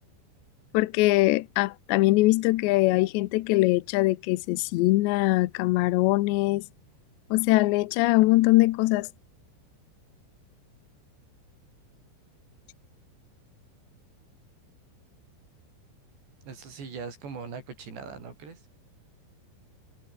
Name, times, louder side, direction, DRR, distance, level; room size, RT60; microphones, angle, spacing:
voice 1, 0.7-6.6 7.3-9.1, left 19 dB, 75° left, 2.8 m, -22 dB
voice 2, 16.4-18.7, right 5 dB, 60° right, 8.2 m, -40 dB
omnidirectional pair, 5.5 m